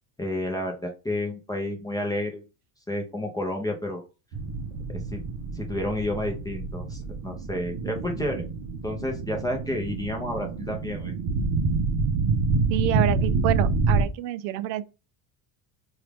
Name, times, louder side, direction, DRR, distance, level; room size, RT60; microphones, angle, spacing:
voice 1, 0.2-2.4 2.9-4.0 5.1-5.2 5.5-8.4 8.8-11.1, left 1 dB, 10° left, 0.4 m, -30 dB
sound 1, 4.3-14.0, right 4 dB, 50° right, 0.9 m, -27 dB
voice 2, 12.7-14.8, right 13 dB, 75° right, 0.5 m, -27 dB
2.9 x 2.4 x 3.3 m
supercardioid pair, 125°, 50 cm